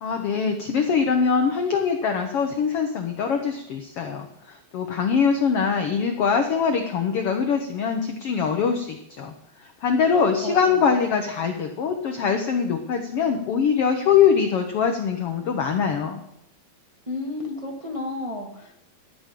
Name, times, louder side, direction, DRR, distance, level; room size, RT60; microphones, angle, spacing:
voice 1, 0.0-9.3 9.8-16.2, left 6 dB, 85° left, 5 dB, 1.3 m, -23 dB
voice 2, 10.1-10.8 17.1-18.8, left 2 dB, 25° right, -1 dB, 0.6 m, -32 dB
15.0 x 12.0 x 3.8 m, 0.77 s
omnidirectional pair, 4.1 m